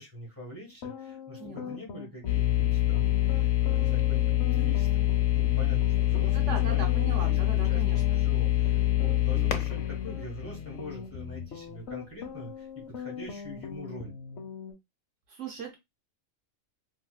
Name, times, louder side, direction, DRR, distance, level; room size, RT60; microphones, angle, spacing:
voice 1, 0.0-5.0 5.3-14.1, equal, 10° left, -3 dB, 1.3 m, -44 dB
sound 1, 0.7-14.7, left 6 dB, 60° left, 0.9 m, -41 dB
voice 2, 1.4-1.7 6.3-8.0 15.3-15.7, right 5 dB, 65° right, 2 dB, 1.1 m, -38 dB
sound 2, 2.3-11.2, left 14 dB, 85° left, 1.0 m, -25 dB
3.2 x 2.9 x 2.3 m, 0.20 s
omnidirectional pair, 1.4 m